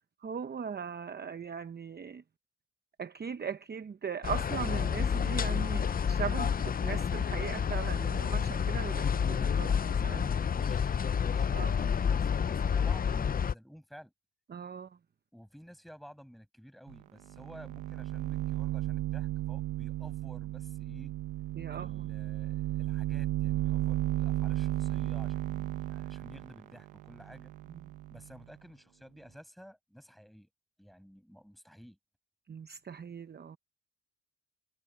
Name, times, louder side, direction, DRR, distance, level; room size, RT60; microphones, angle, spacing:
voice 1, 0.2-2.2 3.0-10.3 11.5-11.7 14.5-15.0 21.5-22.1 27.7-27.8 32.5-33.6, right 7 dB, 35° right, 0.9 m, -39 dB
sound 1, 4.2-13.5, left 7 dB, 30° left, 0.6 m, -29 dB
voice 2, 10.5-14.1 15.3-21.2 21.7-27.5 28.1-30.5 30.8-32.0, equal, ahead, 7.5 m, -53 dB
sound 2, 16.9-17.0 17.3-28.4, right 16 dB, 90° right, 1.1 m, -34 dB
cardioid pair, 90°, 30 cm